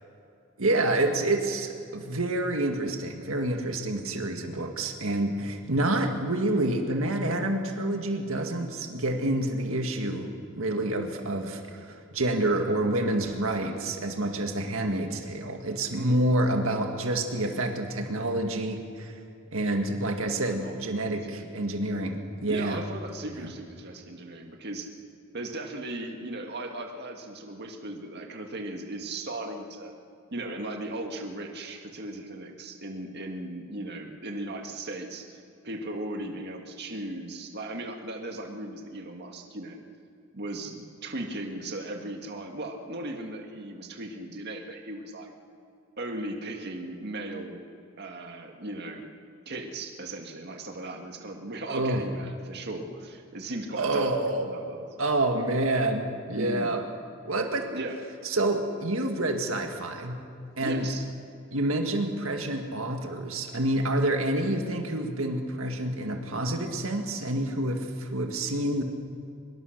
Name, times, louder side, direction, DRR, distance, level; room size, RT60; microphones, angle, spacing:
voice 1, 0.6-10.3 10.6-19.2 19.5-22.8 23.4-23.5 51.7-52.0 53.8-54.5 55.0-56.8 57.3-57.7 58.2-60.2 60.6-60.9 61.5-68.8, right 1 dB, 75° right, 4 dB, 1.9 m, -28 dB
voice 2, 13.6-13.9 15.9-16.2 20.3-21.5 22.5-24.9 25.3-29.9 30.3-35.3 35.6-39.8 40.3-45.3 46.0-47.6 48.0-49.1 49.5-54.9 56.3-56.8 57.7-57.9 60.6-61.1, right 1 dB, 55° right, 3 dB, 1.9 m, -37 dB
24.0 x 22.5 x 6.6 m, 2.5 s
head